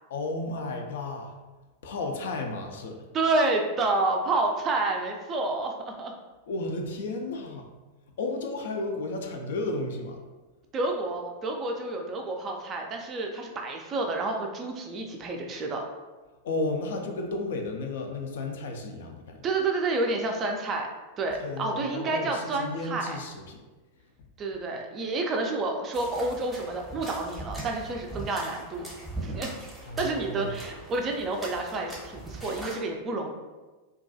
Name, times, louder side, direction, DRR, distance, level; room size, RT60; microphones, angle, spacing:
voice 1, 0.1-1.3 1.8-3.1 6.5-7.7 8.2-10.2 16.4-19.4 21.4-23.6 29.9-30.5, left 2 dB, 60° left, 3 dB, 0.3 m, -33 dB
voice 2, 3.1-6.1 10.7-15.9 19.4-20.9 21.2-23.2 24.4-28.9 29.2-29.5 30.0-33.3, right 2 dB, 30° right, 2 dB, 0.3 m, -29 dB
sound 1, 25.9-32.8, right 2 dB, 5° right, 0.7 m, -40 dB
2.4 x 2.2 x 2.5 m, 1.2 s
figure-of-eight pair, 90°, 0 cm